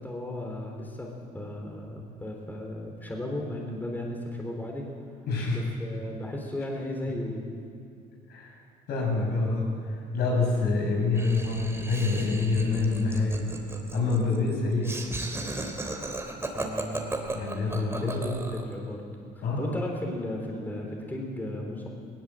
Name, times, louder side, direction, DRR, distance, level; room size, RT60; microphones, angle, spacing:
voice 1, 0.0-4.9 5.5-7.5 16.5-17.1 17.7-18.2 18.5-19.0 19.4-21.9, left 1 dB, 10° left, 0 dB, 3.7 m, -35 dB
voice 2, 5.3-5.7 8.3-8.6 8.9-13.5 13.9-14.9 17.3-18.4 19.4-19.8, left 3 dB, 70° left, -1 dB, 7.3 m, -27 dB
Laughter, 11.1-18.7, right 2 dB, 15° right, 2.9 m, -36 dB
20.0 x 19.0 x 7.6 m, 2.5 s
cardioid pair, 110°, 17 cm